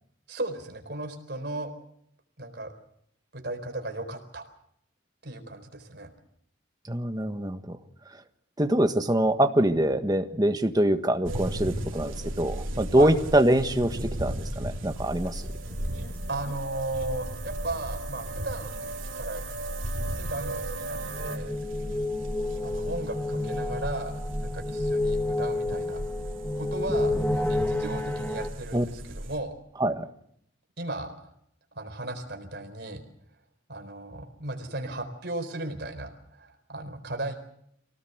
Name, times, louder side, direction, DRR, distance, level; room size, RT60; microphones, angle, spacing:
voice 1, 0.3-1.7 2.4-2.7 3.3-4.5 5.2-6.1 12.9-13.1 16.3-19.4 20.2-21.6 22.6-26.0 26.6-29.5 30.8-31.3 31.7-33.0 33.7-37.3, right 2 dB, 55° right, 6 dB, 4.2 m, -36 dB
voice 2, 6.9-7.8 8.6-15.4 28.7-28.8 29.8-30.1, right 1 dB, 20° right, 7 dB, 1.5 m, -24 dB
sound 1, 11.2-29.4, equal, 85° right, 3.4 m, -36 dB
sound 2, 14.9-21.4, right 3 dB, 70° right, 2.5 m, -39 dB
sound 3, 15.7-15.8 16.0-16.1 16.5-16.6 20.7-28.5, left 2 dB, 10° left, 1.6 m, -30 dB
25.0 x 18.0 x 8.0 m, 0.71 s
head